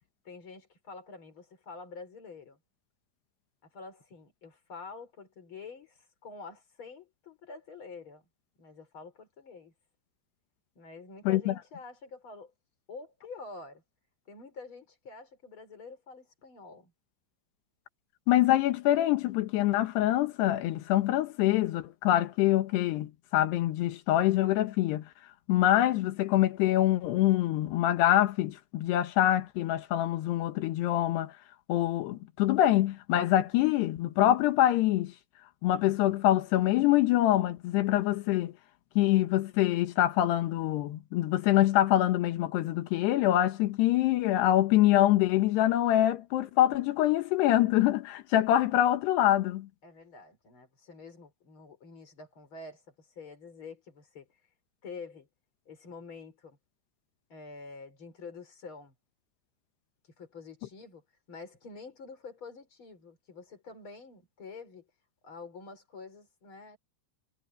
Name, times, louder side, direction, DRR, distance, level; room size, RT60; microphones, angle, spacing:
voice 1, 0.3-2.6 3.7-8.2 8.6-9.7 10.8-12.5 12.9-13.8 14.3-16.9 49.8-54.3 54.8-55.3 55.7-56.6 57.3-58.9 60.2-64.9 65.2-66.8, left 4 dB, 30° left, 5.3 m, -47 dB
voice 2, 18.3-25.1 25.5-31.4 31.7-35.1 35.6-38.5 39.0-49.7, left 13 dB, 85° left, 3.4 m, -25 dB
omnidirectional pair, 4.7 m